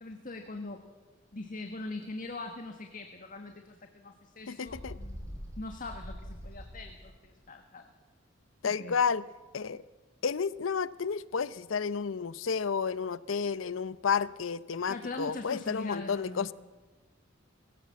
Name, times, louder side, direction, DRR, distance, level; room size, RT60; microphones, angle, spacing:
voice 1, 0.0-0.8 1.3-7.9 8.6-9.0 14.9-16.5, left 2 dB, 45° left, 5 dB, 1.5 m, -42 dB
voice 2, 4.5-5.0 8.6-9.2 9.5-9.8 10.2-16.5, left 6 dB, 85° left, 18 dB, 0.6 m, -31 dB
Bird, 4.7-7.1, equal, 15° right, 5.8 m, -43 dB
21.5 x 17.0 x 7.5 m, 1.3 s
head